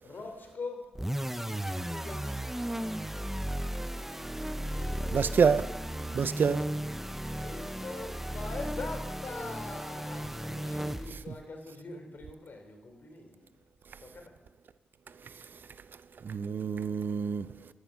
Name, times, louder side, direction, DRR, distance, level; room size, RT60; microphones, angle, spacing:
voice 1, 0.0-0.9 1.7-2.4 4.6-5.5 7.2-13.5 14.0-14.4, left 3 dB, 55° left, 3.4 m, -43 dB
sound 1, 0.9-11.4, right 1 dB, 5° right, 0.8 m, -35 dB
voice 2, 5.1-5.6 6.1-6.6 16.2-17.5, right 6 dB, 60° right, 0.6 m, -26 dB
13.5 x 9.7 x 6.2 m
supercardioid pair, 45°, 4 cm